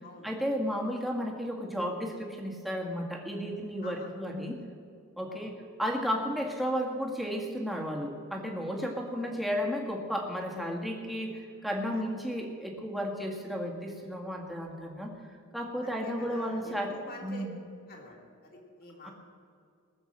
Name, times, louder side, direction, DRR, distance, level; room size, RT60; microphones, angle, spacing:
voice 1, 0.2-4.6 5.2-15.1 15.5-16.9 17.2-17.5 19.0-19.1, equal, ahead, -1 dB, 1.9 m, -33 dB
voice 2, 15.8-17.4 17.9-19.1, left 3 dB, 45° left, -1 dB, 3.1 m, -48 dB
19.5 x 7.1 x 7.6 m, 2.2 s
head